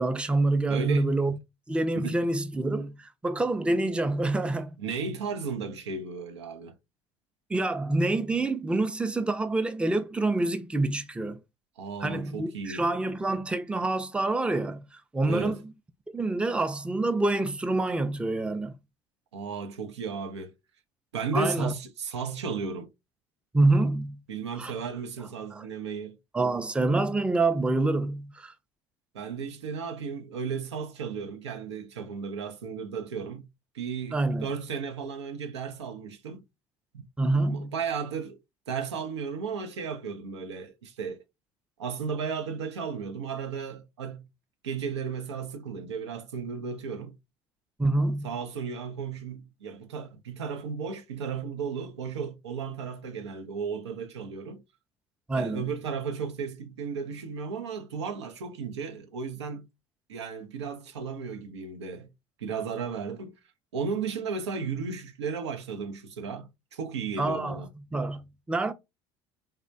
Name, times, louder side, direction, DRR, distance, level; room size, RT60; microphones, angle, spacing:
voice 1, 0.0-1.4 1.7-4.7 7.5-11.4 12.0-15.7 16.1-18.8 21.3-21.7 23.5-24.2 24.6-24.7 25.5-25.6 26.3-28.5 34.1-34.5 37.2-37.7 47.8-48.3 55.3-55.7 67.2-68.7, right 2 dB, 5° right, 0.4 m, -27 dB
voice 2, 0.7-1.1 1.9-2.2 4.8-6.8 11.8-12.8 15.2-15.6 19.3-20.5 21.1-22.9 23.7-23.8 24.3-26.2 29.1-33.5 33.7-36.4 36.9-38.4 38.7-41.2 41.8-44.3 44.6-47.2 48.2-54.6 55.3-59.7 60.1-62.1 62.4-63.3 63.7-67.7, right 5 dB, 90° right, 0.5 m, -34 dB
3.4 x 2.1 x 2.6 m
hypercardioid pair, 65°, 14 cm